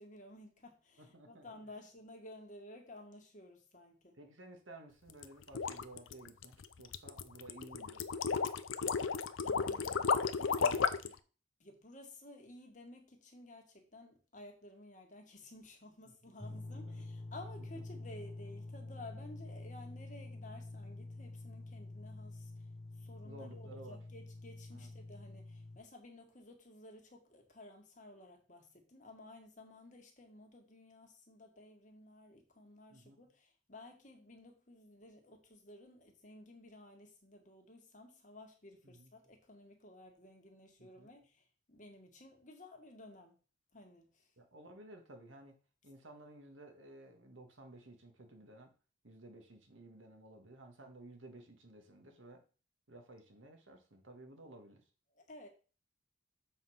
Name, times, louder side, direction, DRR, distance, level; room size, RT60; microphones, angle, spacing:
voice 1, 0.0-4.2 9.4-11.2 11.6-22.7 23.0-43.4 43.7-44.3 55.2-55.5, left 1 dB, 40° left, 3 dB, 1.7 m, -55 dB
voice 2, 1.0-1.8 4.2-8.1 16.1-16.2 16.5-17.0 17.6-17.7 23.2-24.0 24.7-24.9 32.9-33.2 38.8-39.1 40.8-41.1 44.4-45.6 45.8-48.7 49.0-52.4 52.9-54.8, right 1 dB, 80° right, 4 dB, 1.8 m, -55 dB
sound 1, 5.1-11.1, left 5 dB, 90° left, 0.6 m, -33 dB
sound 2, 16.4-25.8, left 2 dB, 15° left, 0.6 m, -47 dB
7.3 x 4.3 x 5.6 m, 0.36 s
head